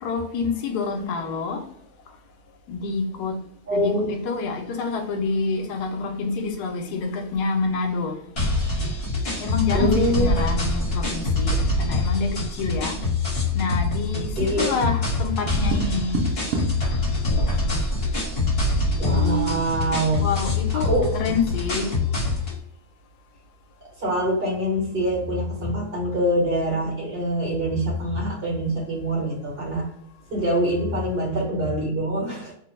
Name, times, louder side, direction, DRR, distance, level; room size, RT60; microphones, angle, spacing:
voice 1, 0.0-1.6 2.7-3.4 3.7-8.2 9.4-13.0 13.5-16.2 20.2-21.9, left 4 dB, 85° left, 1.2 m, -27 dB
voice 2, 3.7-4.3 9.7-10.5 14.4-14.8 19.0-20.3 20.7-21.0 24.0-29.9 30.3-32.5, right 1 dB, 45° right, 1.1 m, -24 dB
sound 1, 8.4-22.6, left 2 dB, 45° left, 1.2 m, -25 dB
Tap, 15.2-16.9 18.9-19.6, right 5 dB, 80° right, 0.5 m, -29 dB
2.8 x 2.1 x 2.9 m
omnidirectional pair, 1.6 m